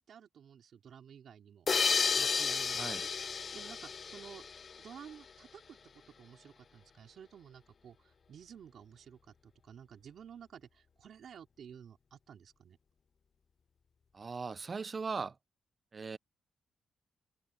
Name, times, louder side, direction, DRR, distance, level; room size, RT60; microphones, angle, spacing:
voice 1, 0.0-1.7 2.1-4.4 4.8-5.8 6.2-12.8, right 8 dB, 65° right, 4.1 m, -53 dB
sound 1, 1.7-5.0, left 5 dB, 45° left, 0.4 m, -32 dB
voice 2, 14.1-15.4 15.9-16.2, right 4 dB, 35° right, 0.5 m, -38 dB
cardioid pair, 105°, 0 cm